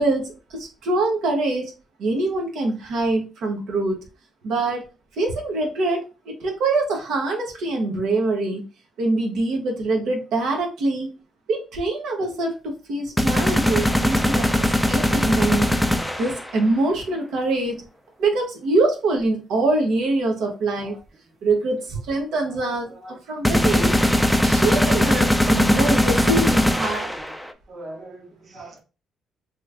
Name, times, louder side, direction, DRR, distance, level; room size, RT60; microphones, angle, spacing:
voice 1, 0.0-1.7 2.0-4.0 4.4-4.8 5.2-8.6 9.0-11.1 11.5-15.7 16.2-17.8 18.2-21.0 21.4-22.9 23.3-23.9 24.4-27.1, right 2 dB, 80° right, 1 dB, 0.9 m, -24 dB
sound 1, 13.2-16.5 23.4-27.5, left 1 dB, ahead, 0.4 m, -20 dB
voice 2, 22.9-23.2 24.7-25.2 26.6-27.4 27.7-28.8, right 2 dB, 45° right, 1 dB, 0.9 m, -42 dB
3.0 x 2.5 x 3.3 m, 0.31 s
cardioid pair, 90°, 0 cm